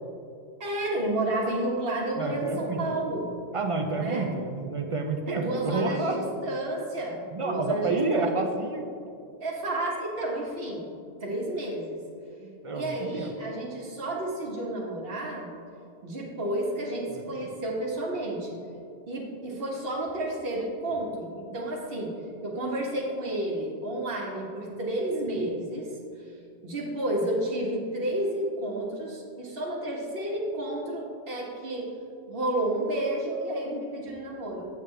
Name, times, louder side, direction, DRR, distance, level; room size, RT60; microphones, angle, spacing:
voice 1, 0.6-3.3 3.9-4.3 5.3-8.3 9.4-10.9 11.2-12.0 12.7-15.5 16.0-18.6 19.1-22.1 22.4-25.9 26.6-31.9 32.3-34.7, right 1 dB, 60° right, -3 dB, 1.5 m, -31 dB
voice 2, 2.2-3.0 3.5-6.2 7.3-8.9 12.4-13.3 17.1-17.5, right 3 dB, 45° right, 4 dB, 0.4 m, -29 dB
8.1 x 6.5 x 3.3 m, 2.5 s
omnidirectional pair, 1.1 m